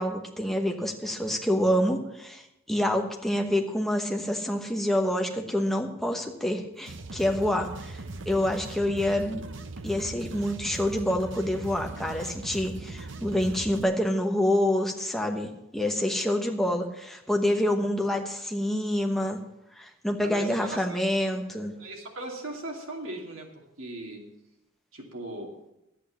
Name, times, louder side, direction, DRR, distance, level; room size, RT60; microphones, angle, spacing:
voice 1, 0.0-2.4 2.7-9.4 9.8-19.4 19.8-21.7, left 1 dB, ahead, 2 dB, 1.1 m, -27 dB
sound 1, 6.8-13.8, right 2 dB, 60° right, 0.8 m, -39 dB
voice 2, 20.2-21.0 21.6-24.2 24.9-25.5, right 1 dB, 80° right, 0 dB, 2.6 m, -38 dB
11.5 x 8.5 x 7.3 m, 0.88 s
head